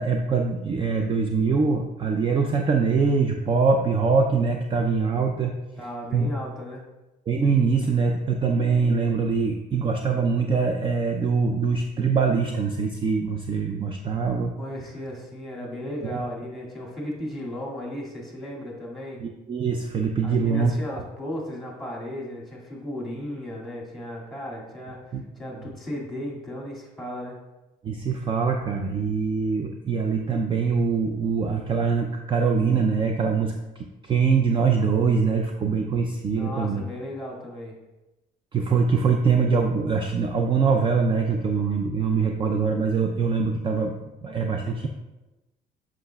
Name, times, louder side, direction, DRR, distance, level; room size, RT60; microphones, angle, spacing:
voice 1, 0.0-5.5 6.1-6.3 7.3-14.5 16.1-16.2 19.2-20.7 25.1-25.2 27.8-36.8 38.5-44.9, right 5 dB, 30° right, 4 dB, 0.5 m, -23 dB
voice 2, 5.8-6.8 14.6-19.2 20.2-27.4 36.4-37.8, left 1 dB, ahead, -3 dB, 2.2 m, -35 dB
7.6 x 6.0 x 2.3 m, 1.0 s
cardioid pair, 110°, 17 cm